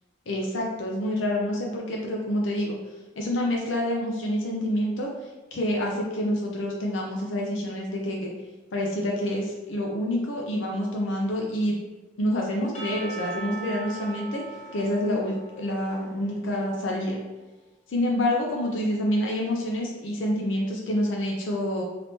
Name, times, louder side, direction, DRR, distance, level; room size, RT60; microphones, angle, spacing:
voice 1, 0.3-2.8 3.2-5.1 5.5-8.3 8.7-11.8 12.2-14.4 14.7-17.2 17.9-21.8, left 1 dB, 85° left, -1 dB, 0.6 m, -27 dB
Percussion / Church bell, 12.7-16.9, right 3 dB, 35° left, 0.6 m, -40 dB
3.5 x 2.8 x 2.7 m, 1.2 s
head